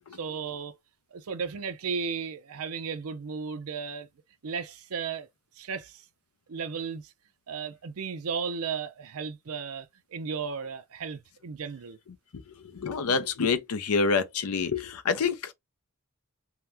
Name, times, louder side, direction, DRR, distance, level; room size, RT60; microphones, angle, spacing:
voice 1, 0.1-0.8 1.1-4.1 4.4-5.3 5.6-6.0 6.5-7.1 7.5-12.0, right 6 dB, 80° right, 0.5 m, -35 dB
voice 2, 12.3-15.5, left 5 dB, 85° left, 0.6 m, -27 dB
2.8 x 2.1 x 3.4 m
head